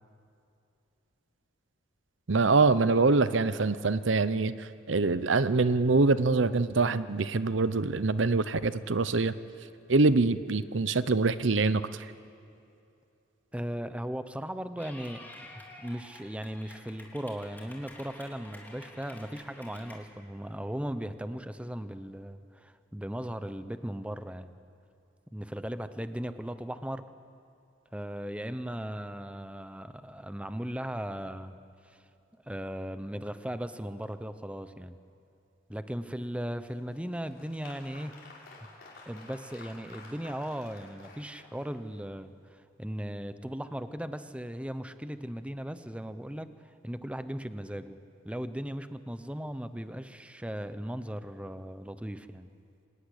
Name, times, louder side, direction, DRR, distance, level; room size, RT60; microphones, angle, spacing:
voice 1, 2.3-9.3 9.9-12.1, right 3 dB, 70° right, 14 dB, 0.8 m, -25 dB
voice 2, 13.5-15.2 15.8-24.5 25.3-27.1 27.9-31.6 31.8-32.0 32.5-35.0 35.7-38.1 39.1-46.5 46.8-48.0 48.2-52.5, equal, 5° right, 11 dB, 0.8 m, -37 dB
Clapping / Cheering, 14.8-20.0, left 1 dB, 10° left, 3.5 m, -50 dB
Applause, 36.6-42.0, left 3 dB, 50° left, 5.7 m, -51 dB
26.5 x 16.5 x 10.0 m, 2.7 s
head